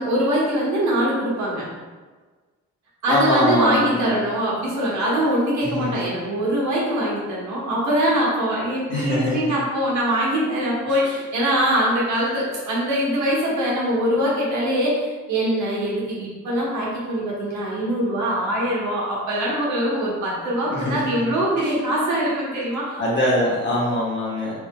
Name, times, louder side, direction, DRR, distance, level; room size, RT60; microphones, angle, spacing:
voice 1, 0.0-1.6 3.0-23.0, right 1 dB, 70° right, -5 dB, 1.1 m, -23 dB
voice 2, 3.1-4.2 5.6-5.9 8.9-9.6 20.7-21.3 23.0-24.5, left 1 dB, 40° left, -6 dB, 1.2 m, -23 dB
3.3 x 2.7 x 2.2 m, 1.3 s
cardioid pair, 90°, 30 cm